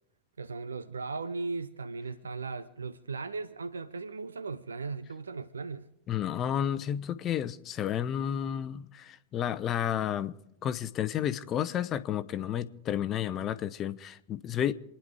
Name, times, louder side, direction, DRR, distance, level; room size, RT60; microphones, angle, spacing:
voice 1, 0.4-5.9, right 4 dB, 75° right, 0.6 m, -37 dB
voice 2, 6.1-10.4 10.6-14.7, left 10 dB, 30° left, 0.8 m, -31 dB
28.0 x 10.5 x 4.9 m
figure-of-eight pair, 90°, 0 cm